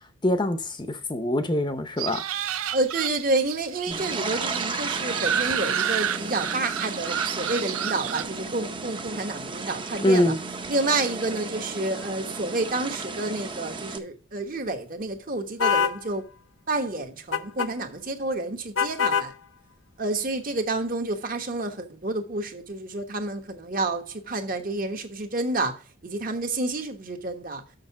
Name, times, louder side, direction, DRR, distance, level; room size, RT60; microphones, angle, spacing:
voice 1, 0.2-2.2 3.9-4.0 10.0-10.4, left 1 dB, 20° left, 0.6 m, -24 dB
sound 1, 2.0-8.2, right 9 dB, 80° right, 0.5 m, -30 dB
voice 2, 2.7-10.3 10.7-16.2 16.7-19.3 20.0-27.6, right 2 dB, 40° right, 1.1 m, -29 dB
sound 2, 3.9-14.0, right 4 dB, 20° right, 0.7 m, -34 dB
sound 3, 15.6-16.0 17.3-17.7 18.8-19.3, left 6 dB, 60° left, 0.6 m, -23 dB
6.5 x 6.4 x 5.7 m
head